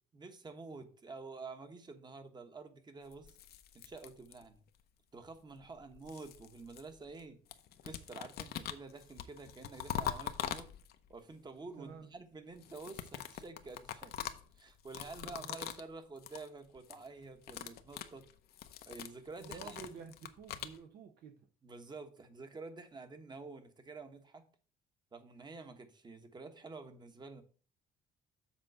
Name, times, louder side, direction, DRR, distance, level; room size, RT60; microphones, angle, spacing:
voice 1, 0.1-3.3 3.7-4.6 5.1-7.4 7.8-10.7 11.1-14.1 14.6-18.3 18.9-20.0 21.6-24.4 25.1-27.4, right 3 dB, 25° right, 8 dB, 1.3 m, -49 dB
sound 1, 3.1-4.7 5.6-7.2 7.5-11.1 12.5-15.9 16.2-16.5 16.8-17.1 17.4-20.8, left 10 dB, 65° left, 0.8 m, -43 dB
voice 2, 11.8-12.1 15.2-15.7 19.4-21.5, right 6 dB, 65° right, 5 dB, 0.9 m, -51 dB
7.4 x 3.9 x 6.6 m, 0.41 s
cardioid pair, 110°, 17 cm